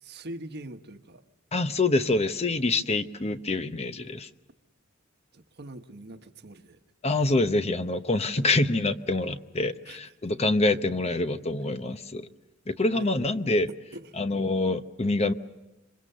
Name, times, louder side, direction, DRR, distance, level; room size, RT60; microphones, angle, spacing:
voice 1, 0.0-1.2 5.3-6.8 9.9-10.0 12.9-13.1 13.9-14.1, right 1 dB, 55° right, 7 dB, 1.3 m, -42 dB
voice 2, 1.5-4.3 7.0-12.3 12.7-13.7 14.1-15.3, left 2 dB, 30° left, 9 dB, 0.9 m, -26 dB
27.0 x 24.0 x 6.8 m, 0.99 s
head